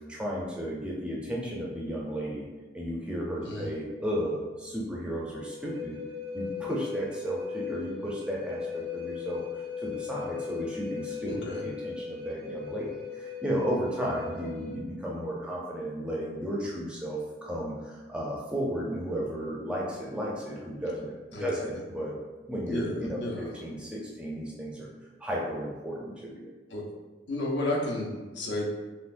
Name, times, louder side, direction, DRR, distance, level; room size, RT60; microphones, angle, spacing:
voice 1, 0.1-2.5 2.7-6.0 6.3-9.4 9.8-21.1 21.4-22.2 22.5-24.9 25.2-26.5, equal, 5° right, -4 dB, 0.5 m, -34 dB
Wind instrument woodwind instrument, 5.5-14.8, left 5 dB, 30° left, 0.8 m, -38 dB
voice 2, 11.3-11.6 21.3-21.7 22.7-23.5 26.7-26.9 27.3-28.7, left 1 dB, 70° left, -2 dB, 0.7 m, -32 dB
5.6 x 2.1 x 2.5 m, 1.3 s
head